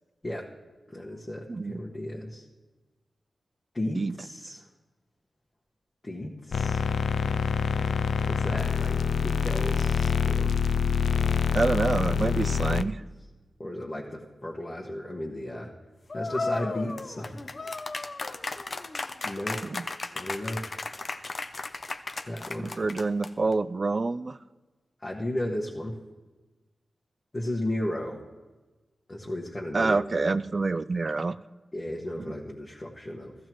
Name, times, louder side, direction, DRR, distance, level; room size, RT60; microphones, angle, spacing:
voice 1, 0.9-2.4 3.7-4.6 6.0-6.8 8.3-10.6 13.6-15.7 16.1-17.3 19.2-19.6 20.1-20.7 22.2-22.7 25.0-25.9 27.3-28.2 29.1-30.4 31.7-33.3, left 1 dB, 25° left, -4 dB, 1.5 m, -34 dB
voice 2, 1.5-1.8 4.0-4.1 4.4-4.5 11.5-13.0 19.7-19.8 22.8-24.4 29.7-31.4 32.2-32.3, right 3 dB, 35° right, 16 dB, 0.4 m, -27 dB
sound 1, 6.5-12.8, left 6 dB, 80° left, 0.4 m, -26 dB
sound 2, 16.1-23.5, left 3 dB, 40° left, 0.6 m, -35 dB
16.0 x 15.0 x 3.1 m, 1.2 s
wide cardioid pair, 110°, 0 cm